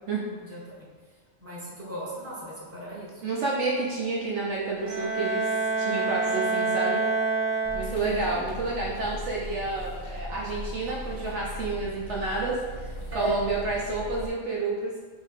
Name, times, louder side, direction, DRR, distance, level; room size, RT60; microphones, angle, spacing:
voice 1, 0.3-0.8 1.4-3.2 7.8-8.4 13.1-13.4, right 2 dB, 10° right, -7 dB, 1.1 m, -36 dB
voice 2, 3.2-5.5 5.8-7.0 7.7-14.9, right 3 dB, 65° right, -4 dB, 0.9 m, -30 dB
Bowed string instrument, 4.8-8.3, right 4 dB, 85° right, 1.4 m, -27 dB
sound 1, 7.6-14.3, equal, 55° left, 0.3 m, -38 dB
5.1 x 2.7 x 3.6 m, 1.5 s
omnidirectional pair, 1.3 m